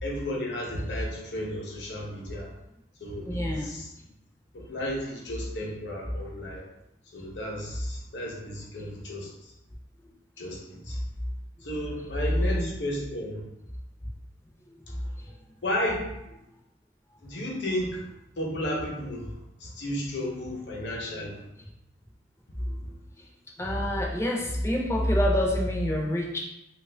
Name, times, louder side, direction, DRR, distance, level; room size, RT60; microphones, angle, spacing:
voice 1, 0.0-2.5 3.0-3.8 4.5-6.6 7.1-9.3 10.4-10.6 10.8-11.0 11.6-13.4 14.9-15.0 15.6-16.1 17.2-18.0 18.4-19.3 19.6-21.4, left 1 dB, 75° left, -2 dB, 0.8 m, -33 dB
voice 2, 3.3-3.8 12.4-12.7 14.7-14.8 22.6-22.8 23.6-26.4, equal, 15° left, -1 dB, 0.5 m, -26 dB
2.9 x 2.4 x 3.3 m, 0.86 s
head